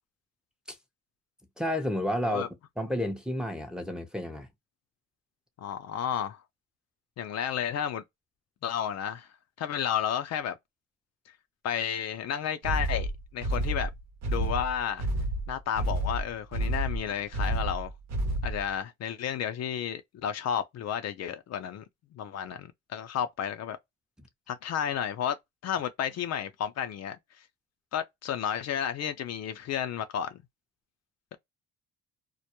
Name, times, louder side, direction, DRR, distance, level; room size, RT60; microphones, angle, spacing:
voice 1, 1.6-2.5 2.8-4.5 24.2-24.3, equal, 5° right, 0.6 m, -31 dB
voice 2, 5.6-6.4 7.2-8.0 8.6-9.3 9.6-10.6 11.6-13.1 13.3-13.9 14.3-15.1 15.5-17.9 18.4-21.8 22.1-23.8 24.5-25.4 25.6-27.4 27.9-30.4, left 9 dB, 60° left, 0.4 m, -32 dB
sound 1, 12.6-18.7, right 1 dB, 65° right, 0.8 m, -30 dB
2.2 x 2.1 x 2.8 m
cardioid pair, 90°, 30 cm